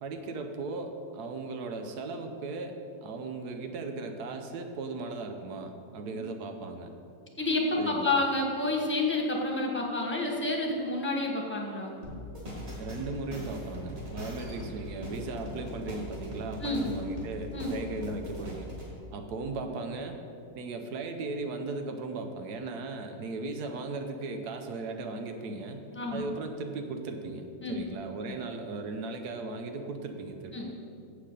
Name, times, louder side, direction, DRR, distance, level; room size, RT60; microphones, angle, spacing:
voice 1, 0.0-6.9 7.8-8.2 12.7-18.7 19.1-20.2 20.5-30.8, right 3 dB, 90° right, 5 dB, 1.3 m, -37 dB
voice 2, 7.4-11.9 16.6-16.8 17.5-17.7 25.9-26.3 27.6-27.8 28.3-28.4 30.5-30.9, left 2 dB, 10° left, 0 dB, 1.1 m, -29 dB
sound 1, 12.0-18.9, left 1 dB, 45° right, 2.8 m, -40 dB
7.8 x 6.6 x 6.6 m, 2.6 s
omnidirectional pair, 1.6 m